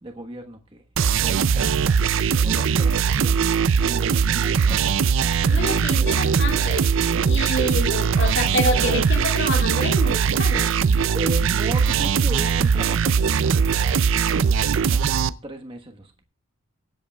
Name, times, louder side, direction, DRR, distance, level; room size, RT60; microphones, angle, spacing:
voice 1, 0.0-2.0 2.4-5.2 5.6-5.9 7.2-7.6 11.1-16.2, right 1 dB, 25° right, 1.3 m, -37 dB
sound 1, 1.0-15.3, right 6 dB, 65° right, 0.4 m, -20 dB
voice 2, 5.4-6.9 7.2-10.7, left 1 dB, 55° left, 2.4 m, -27 dB
23.5 x 8.0 x 2.3 m
head